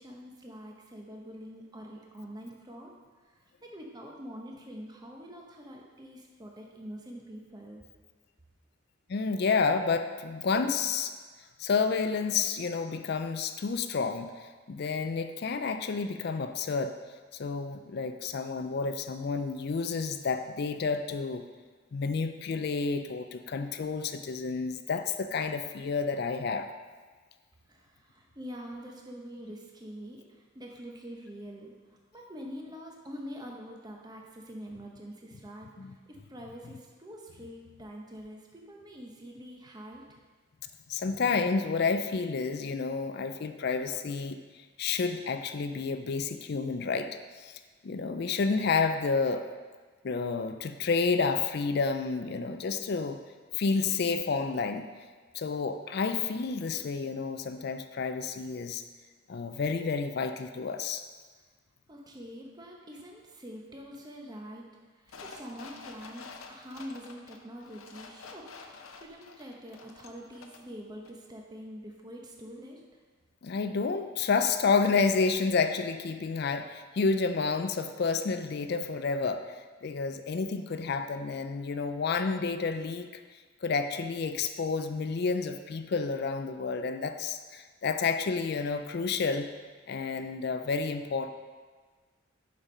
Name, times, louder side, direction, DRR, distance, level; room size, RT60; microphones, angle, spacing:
voice 1, 0.0-2.9 3.2-7.8 27.7-31.7 32.1-40.0 61.9-64.6 64.9-72.8, equal, 20° right, 0 dB, 0.9 m, -45 dB
voice 2, 9.1-11.1 11.6-16.9 17.3-21.4 21.9-26.7 35.8-36.0 40.9-44.4 44.8-47.1 47.4-47.5 47.8-49.4 50.0-53.2 53.6-54.9 55.3-58.8 59.3-61.0 73.4-83.1 83.6-89.5 89.9-91.3, left 4 dB, 50° left, 8 dB, 0.4 m, -30 dB
sound 1, 65.1-70.7 71.1-71.2, left 4 dB, 80° left, 0.7 m, -49 dB
7.0 x 5.3 x 5.5 m, 1.4 s
head